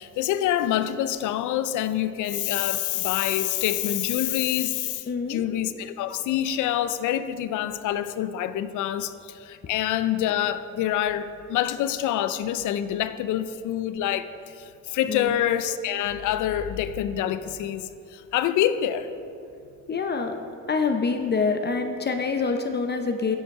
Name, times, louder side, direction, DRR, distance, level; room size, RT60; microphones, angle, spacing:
voice 1, 0.0-14.3 14.6-19.1, left 11 dB, 80° left, 0.5 m, -26 dB
voice 2, 5.1-5.4 15.1-15.3 19.9-20.4 20.7-23.4, left 4 dB, 35° left, 0.6 m, -26 dB
10.5 x 5.6 x 4.7 m
cardioid pair, 90°, 30 cm